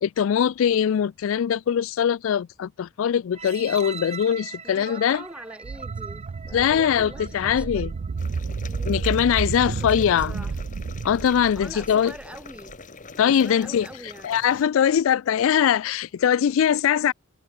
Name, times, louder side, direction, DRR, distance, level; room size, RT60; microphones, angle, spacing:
voice 1, 0.0-5.2 6.5-7.9 8.9-10.3 11.0-12.1 13.2-13.9 14.2-17.1, left 8 dB, 65° left, 0.3 m, -22 dB
sound 1, 3.3-8.3 8.9-9.0, right 6 dB, 30° right, 3.4 m, -40 dB
voice 2, 4.6-7.8 8.6-9.1 9.6-10.5 11.5-12.7 13.1-14.3, right 1 dB, 5° right, 3.8 m, -43 dB
sound 2, 5.6-12.7, right 4 dB, 55° right, 0.5 m, -31 dB
sound 3, 8.2-14.6, left 4 dB, 40° left, 1.5 m, -44 dB
head